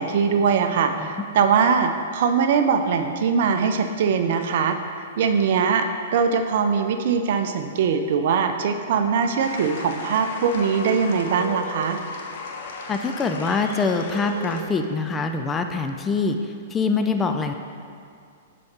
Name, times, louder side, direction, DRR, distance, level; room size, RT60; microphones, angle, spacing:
voice 1, 0.0-4.8 5.2-12.0, right 6 dB, 60° right, 7 dB, 0.5 m, -21 dB
sound 1, 9.4-14.6, left 3 dB, 65° left, 0.8 m, -35 dB
voice 2, 12.9-17.5, left 4 dB, 20° left, 6 dB, 0.4 m, -24 dB
6.3 x 5.0 x 4.2 m, 2.3 s
hypercardioid pair, 115°, 0 cm